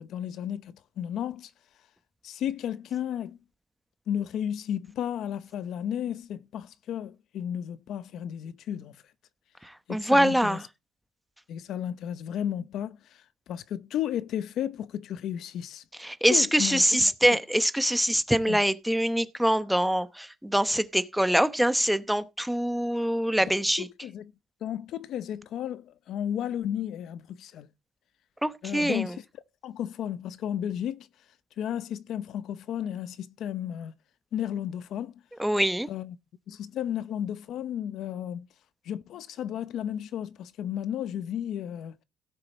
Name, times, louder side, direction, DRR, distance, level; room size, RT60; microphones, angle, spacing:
voice 1, 0.0-1.5 2.2-3.4 4.1-9.0 9.9-10.6 11.5-13.2 13.5-15.8 16.3-16.8 18.5-18.6 23.4-23.5 23.8-24.3 24.6-27.7 28.6-29.2 29.6-31.1 31.6-33.9 34.3-35.1 35.9-36.2 36.5-38.5 38.8-41.9, left 10 dB, 70° left, 0.7 m, -33 dB
voice 2, 9.6-10.6 16.0-23.9 28.4-29.2 35.4-35.9, right 1 dB, 5° right, 0.9 m, -24 dB
16.5 x 6.7 x 4.1 m
cardioid pair, 140°, 0 cm